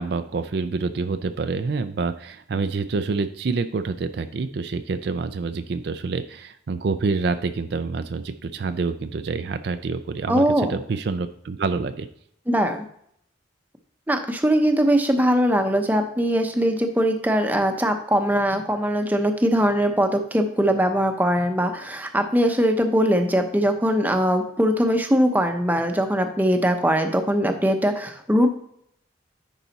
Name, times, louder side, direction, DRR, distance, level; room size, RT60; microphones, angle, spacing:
voice 1, 0.0-12.1, right 4 dB, 60° right, 10 dB, 0.4 m, -27 dB
voice 2, 10.3-10.8 12.5-12.8 14.1-28.5, equal, 10° right, 5 dB, 0.7 m, -21 dB
10.0 x 4.0 x 4.1 m, 0.70 s
head